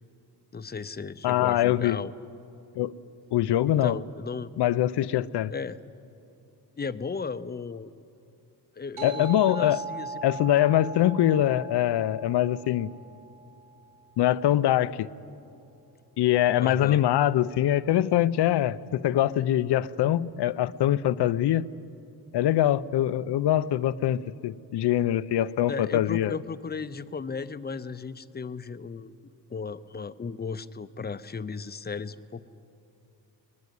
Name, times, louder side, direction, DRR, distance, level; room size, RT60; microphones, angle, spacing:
voice 1, 0.5-2.1 3.7-4.5 5.5-5.8 6.8-7.9 8.8-10.2 16.6-17.0 25.7-29.1 29.5-32.5, left 5 dB, 25° left, 13 dB, 0.6 m, -35 dB
voice 2, 1.2-2.0 2.8-2.9 3.3-4.0 4.6-5.5 9.0-9.8 10.2-12.9 14.2-15.1 16.2-21.6 22.3-26.4, left 12 dB, 75° left, 16 dB, 0.7 m, -23 dB
sound 1, 9.0-13.9, right 5 dB, 75° right, 5.5 m, -40 dB
21.5 x 20.5 x 9.8 m, 2.7 s
cardioid pair, 120°, 40 cm